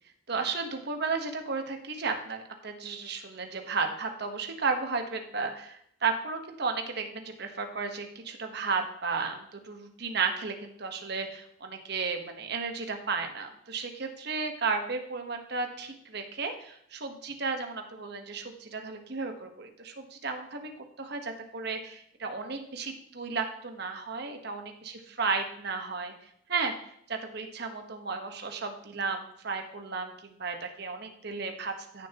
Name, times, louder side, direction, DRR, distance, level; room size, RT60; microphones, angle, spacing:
voice 1, 0.3-20.7 21.0-26.1 26.5-26.7 27.1-32.1, right 4 dB, 60° right, 5 dB, 1.2 m, -34 dB
15.5 x 6.9 x 3.0 m, 0.70 s
head